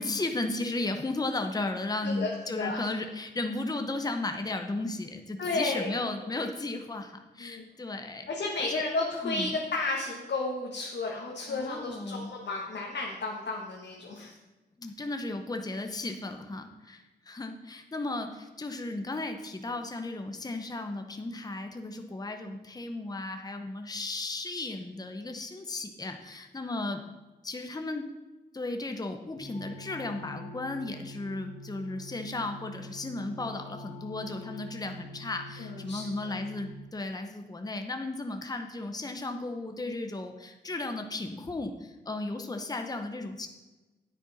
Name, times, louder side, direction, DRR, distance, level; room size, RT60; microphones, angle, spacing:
voice 1, 0.0-8.3 8.6-8.8 9.2-9.5 11.5-12.3 14.8-27.0 27.4-28.1 28.5-43.5, left 2 dB, 20° left, 5 dB, 0.8 m, -35 dB
voice 2, 2.0-2.9 5.4-6.4 7.4-7.6 8.3-14.3 35.6-36.3, left 3 dB, 75° left, -2 dB, 1.4 m, -33 dB
sound 1, 29.4-36.7, left 1 dB, 45° left, 1.7 m, -45 dB
9.8 x 9.2 x 4.1 m, 1.2 s
wide cardioid pair, 95°, 18 cm